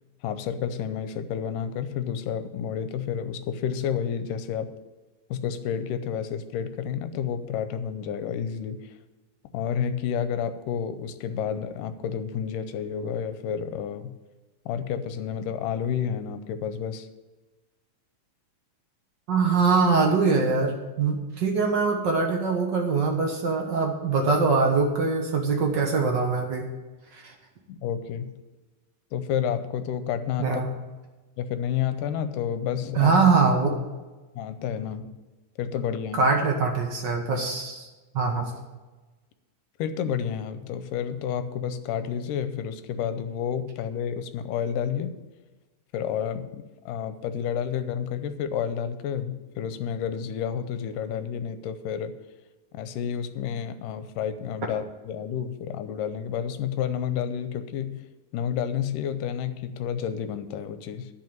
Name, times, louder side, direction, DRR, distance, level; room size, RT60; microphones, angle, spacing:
voice 1, 0.2-4.7 5.3-9.0 9.5-14.1 14.7-17.1 27.7-28.3 29.1-30.6 31.4-33.1 34.4-35.2 35.6-36.3 39.8-45.1 45.9-52.1 52.7-58.0 58.3-61.1, left 8 dB, 80° left, 11 dB, 2.2 m, -30 dB
voice 2, 19.3-26.7 27.1-27.3 30.4-30.7 32.9-33.7 36.1-37.9 38.1-38.5, right 4 dB, 70° right, 2 dB, 1.0 m, -23 dB
10.5 x 5.8 x 8.8 m, 1.2 s
omnidirectional pair, 4.0 m